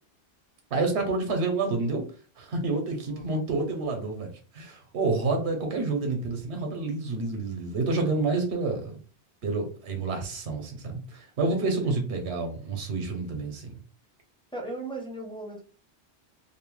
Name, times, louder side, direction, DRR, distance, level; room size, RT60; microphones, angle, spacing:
voice 1, 0.7-2.1 2.4-9.0 9.4-13.8, right 3 dB, 75° right, 4 dB, 1.0 m, -29 dB
voice 2, 3.1-3.4 11.5-12.0 14.5-15.6, right 2 dB, 5° left, -1 dB, 0.5 m, -38 dB
2.7 x 2.1 x 3.0 m, 0.39 s
omnidirectional pair, 1.2 m